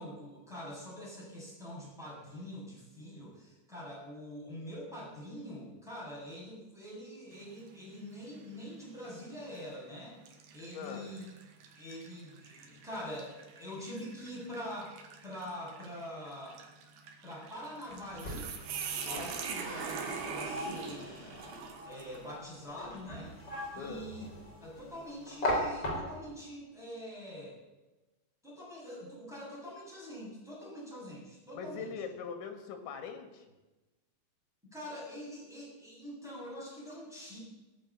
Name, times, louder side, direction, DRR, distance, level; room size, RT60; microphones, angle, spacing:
voice 1, 0.0-10.2 10.5-11.2 11.7-16.6 17.2-18.5 19.1-21.3 21.8-23.3 23.7-24.2 24.6-27.6 28.4-31.9 34.7-37.4, equal, ahead, -6 dB, 7.0 m, -44 dB
sound 1, 7.3-7.8 8.3-8.5 9.4-9.6 10.3-22.3, right 6 dB, 70° right, 3.4 m, -43 dB
voice 2, 10.7-11.2 23.8-24.1 31.5-33.5, left 6 dB, 80° left, 6 dB, 4.1 m, -41 dB
sound 2, 17.9-26.4, left 1 dB, 30° left, 4.6 m, -39 dB
17.5 x 8.8 x 8.7 m, 1.1 s
omnidirectional pair, 5.2 m